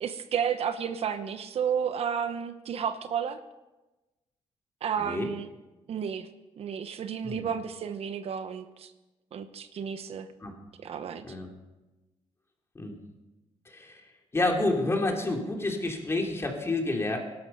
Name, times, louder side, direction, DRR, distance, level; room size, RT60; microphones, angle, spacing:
voice 1, 0.0-3.4 4.8-5.5 5.9-6.3 6.6-8.9 9.3-10.3 10.8-11.2, right 7 dB, 60° right, 10 dB, 1.0 m, -32 dB
voice 2, 13.7-14.0 14.3-17.2, left 2 dB, 25° left, 2 dB, 3.0 m, -29 dB
18.0 x 12.5 x 5.5 m, 1.1 s
cardioid pair, 105°, 11 cm